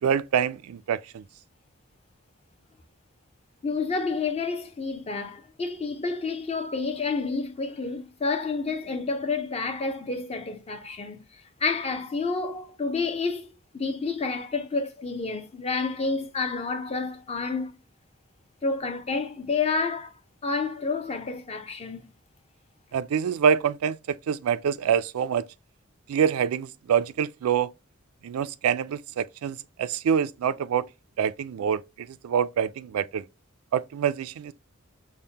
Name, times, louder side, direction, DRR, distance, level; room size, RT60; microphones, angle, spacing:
voice 1, 0.0-1.2 22.9-25.5 26.1-27.7 28.2-30.9 31.2-33.3 33.7-34.5, right 8 dB, 90° right, 0.3 m, -26 dB
voice 2, 3.6-11.2 11.6-17.8 18.6-20.1 20.4-22.1, left 4 dB, 30° left, 0.5 m, -29 dB
5.3 x 2.1 x 2.7 m
head